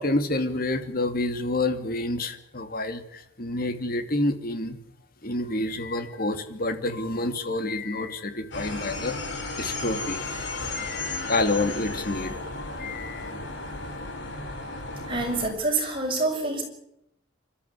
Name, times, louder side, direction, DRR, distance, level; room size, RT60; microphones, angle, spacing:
voice 1, 0.0-4.8 5.2-9.2 9.6-13.3, left 2 dB, 50° left, 8 dB, 2.5 m, -29 dB
sound 1, 8.5-15.5, left 2 dB, 65° left, 5.0 m, -34 dB
voice 2, 15.1-16.6, right 2 dB, 25° right, 2 dB, 6.7 m, -26 dB
25.5 x 13.0 x 9.9 m, 0.79 s
head